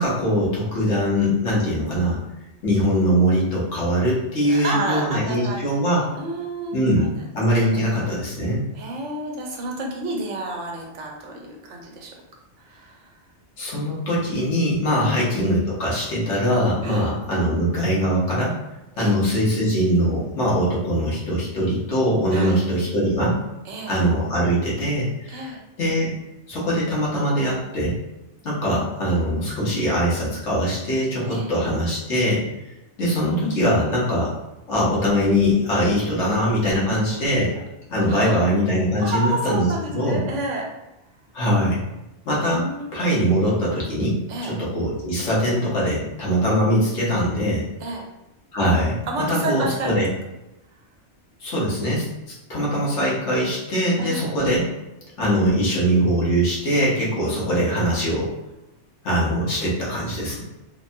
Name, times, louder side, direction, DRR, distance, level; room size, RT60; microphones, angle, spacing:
voice 1, 0.0-2.2 2.6-6.0 6.7-7.1 7.3-8.6 13.6-18.6 19.0-23.4 23.9-26.1 26.5-27.9 28.4-32.4 33.0-34.3 34.7-37.6 37.9-39.7 39.9-40.2 41.3-41.8 42.3-47.6 48.5-50.1 51.4-52.1 52.5-54.7 55.2-58.3 59.0-60.4, equal, 75° left, -6 dB, 1.3 m, -22 dB
voice 2, 4.5-7.1 7.7-7.9 8.7-12.1 12.6-13.1 15.0-15.2 16.8-17.1 18.9-19.1 22.3-22.6 23.6-23.9 25.3-25.6 31.3-31.5 38.1-38.5 39.0-40.7 42.5-43.1 44.3-44.5 47.8-48.0 49.1-50.0 54.0-54.3, right 2 dB, 80° right, 0 dB, 1.0 m, -30 dB
3.3 x 2.2 x 2.6 m, 0.96 s
omnidirectional pair, 1.2 m